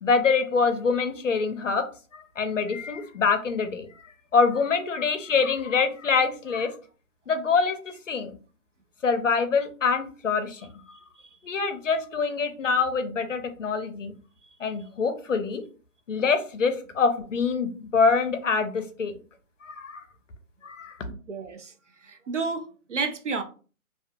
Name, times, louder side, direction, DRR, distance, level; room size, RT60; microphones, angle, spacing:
voice 1, 0.0-1.8 2.1-4.0 4.3-6.7 7.3-7.8 8.1-8.4 9.0-10.7 11.4-14.1 14.6-15.6 16.1-19.1 19.6-20.0 20.6-20.9, left 5 dB, 60° left, 0.5 m, -25 dB
voice 2, 10.9-11.3 21.1-21.7 22.0-23.4, right 4 dB, 60° right, 0.5 m, -32 dB
2.4 x 2.3 x 2.5 m
hypercardioid pair, 180°, 43 cm